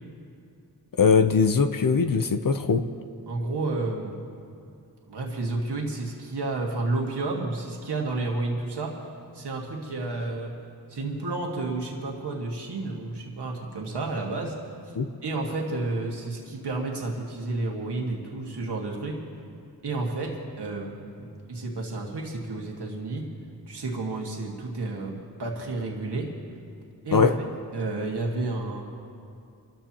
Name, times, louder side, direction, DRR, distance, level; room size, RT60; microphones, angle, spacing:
voice 1, 1.0-2.9 15.0-15.1 27.1-27.4, left 5 dB, 55° left, 9 dB, 0.7 m, -21 dB
voice 2, 3.3-4.1 5.1-9.0 9.3-10.5 10.9-14.6 15.2-19.2 19.8-23.3 23.7-26.3 27.0-27.3 27.7-28.8, right 2 dB, 85° right, -1 dB, 1.9 m, -31 dB
25.0 x 13.5 x 3.0 m, 2.5 s
cardioid pair, 60°, 39 cm